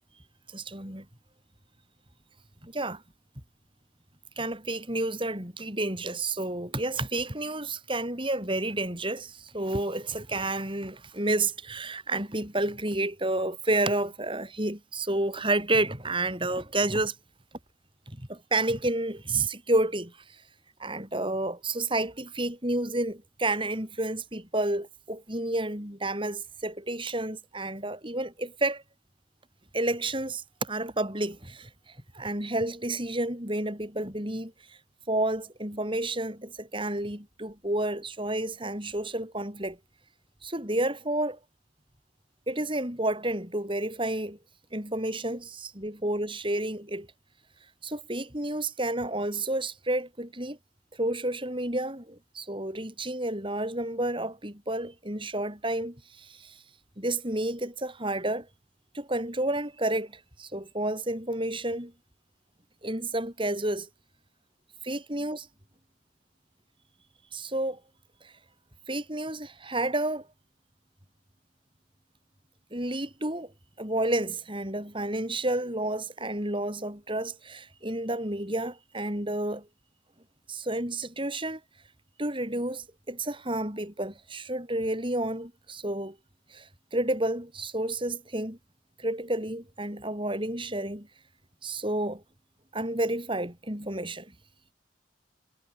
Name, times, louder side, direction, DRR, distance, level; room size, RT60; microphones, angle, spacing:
voice 1, 0.5-1.1 2.6-3.0 4.4-17.2 18.1-20.2 20.8-28.8 29.7-31.7 32.1-34.5 35.1-39.8 40.4-41.4 42.5-44.4 44.7-47.1 47.8-50.6 51.0-56.6 57.0-58.5 58.9-61.9 62.8-63.9 64.8-65.5 67.3-67.8 68.2-68.3 68.9-70.3 72.7-73.5 73.8-79.7 80.5-81.6 82.2-86.2 86.5-88.6 89.0-91.1 91.6-92.2 92.7-94.3, right 1 dB, 25° right, 7.6 m, -30 dB
head